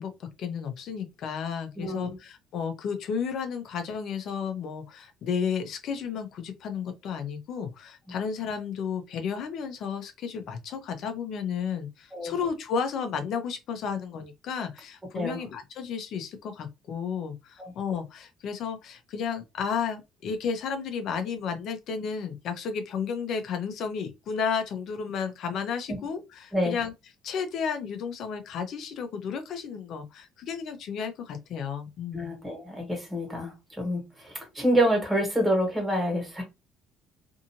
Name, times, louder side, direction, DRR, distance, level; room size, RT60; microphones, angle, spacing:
voice 1, 0.0-26.9 27.2-32.4, left 6 dB, 60° left, 0.7 m, -33 dB
voice 2, 1.8-2.2 12.1-12.4 15.1-15.4 17.6-17.7 26.5-26.7 32.1-36.4, equal, 10° right, 1.5 m, -27 dB
2.7 x 2.5 x 2.8 m
cardioid pair, 100°, 0 cm